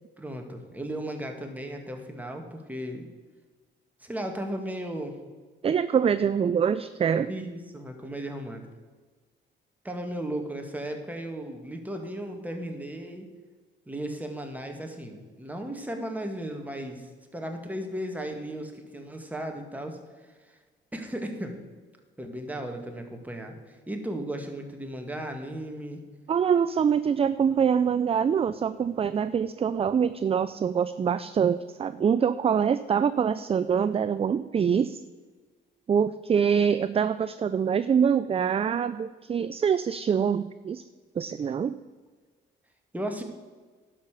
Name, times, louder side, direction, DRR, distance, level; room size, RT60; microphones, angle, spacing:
voice 1, 0.2-3.0 4.0-5.2 7.3-8.7 9.8-13.3 13.9-20.0 20.5-20.6 20.9-21.5 22.2-26.0 42.9-43.2, right 1 dB, 10° right, 3 dB, 1.9 m, -35 dB
voice 2, 5.6-7.3 26.3-35.0 35.9-40.8 41.2-41.8, right 7 dB, 30° right, 14 dB, 0.4 m, -24 dB
11.5 x 5.6 x 6.6 m, 1.4 s
cardioid pair, 90°, 20 cm